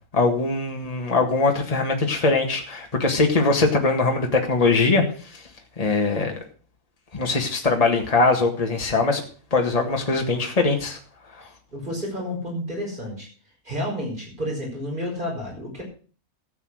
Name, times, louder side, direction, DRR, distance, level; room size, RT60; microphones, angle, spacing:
voice 1, 0.1-5.0 5.8-6.3 7.1-9.2 9.5-11.0, left 3 dB, 25° left, 2 dB, 1.9 m, -21 dB
voice 2, 11.7-13.3 13.6-15.8, equal, 35° right, 0 dB, 5.8 m, -30 dB
13.5 x 8.2 x 6.4 m, 0.40 s
omnidirectional pair, 1.4 m